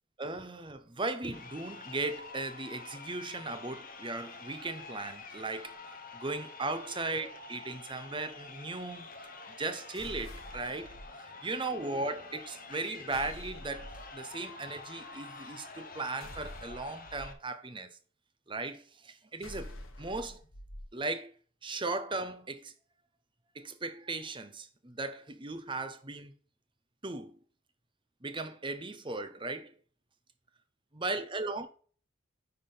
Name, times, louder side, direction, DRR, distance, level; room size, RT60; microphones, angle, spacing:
voice 1, 0.2-5.8 6.1-9.1 9.6-11.0 11.4-17.9 18.5-20.4 20.9-21.3 21.6-22.7 23.5-26.3 27.0-27.3 28.2-29.7 30.9-31.7, right 3 dB, 25° right, 0.8 m, -37 dB
Crowd, 1.2-17.3, left 3 dB, 40° left, 1.1 m, -48 dB
sound 1, 9.9-11.1 13.1-14.1 16.2-17.3 19.4-20.9, left 1 dB, 75° left, 1.5 m, -46 dB
10.0 x 3.8 x 5.2 m
head